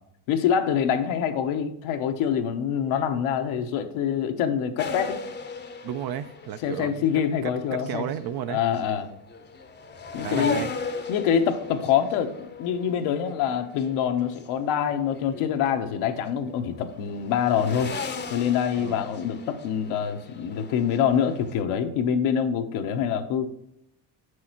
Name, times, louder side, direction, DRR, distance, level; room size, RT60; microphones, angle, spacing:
voice 1, 0.3-5.2 6.6-8.1 8.5-9.1 10.1-10.6 11.1-18.0 18.3-23.5, left 8 dB, 80° left, 6 dB, 1.1 m, -25 dB
sound 1, 4.8-14.5 14.9-16.6 16.9-21.6, left 4 dB, 20° left, 0.7 m, -38 dB
voice 2, 5.8-7.0 7.4-8.6 10.2-10.7 18.8-19.0, right 10 dB, 50° right, 13 dB, 0.5 m, -33 dB
7.3 x 6.2 x 3.0 m, 0.76 s
cardioid pair, 100°, 49 cm